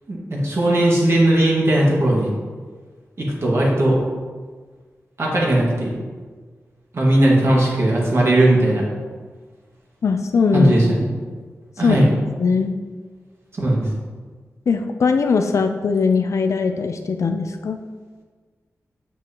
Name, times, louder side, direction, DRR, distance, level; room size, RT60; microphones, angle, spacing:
voice 1, 0.1-2.3 3.2-4.0 5.2-6.0 6.9-8.8 10.5-11.1 11.8-12.1 13.5-13.8, right 1 dB, 55° right, -4 dB, 1.8 m, -17 dB
voice 2, 10.0-10.7 11.8-12.0 12.4-12.7 14.7-17.8, left 5 dB, 65° left, 6 dB, 0.4 m, -20 dB
6.8 x 6.1 x 2.9 m, 1.5 s
wide cardioid pair, 90°, 6 cm